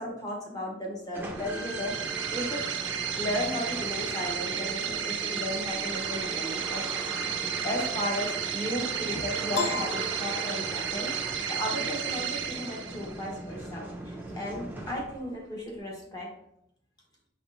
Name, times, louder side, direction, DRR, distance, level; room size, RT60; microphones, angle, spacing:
voice 1, 0.0-1.9 2.3-7.3 7.6-11.1 11.5-16.3, equal, 20° left, -2 dB, 0.9 m, -35 dB
sound 1, 1.1-15.4, right 2 dB, 10° right, 0.4 m, -39 dB
sound 2, 1.4-13.3, right 8 dB, 75° right, 0.4 m, -33 dB
Piano, 9.5-11.1, left 4 dB, 85° left, 0.6 m, -34 dB
5.4 x 3.5 x 2.5 m, 0.77 s
head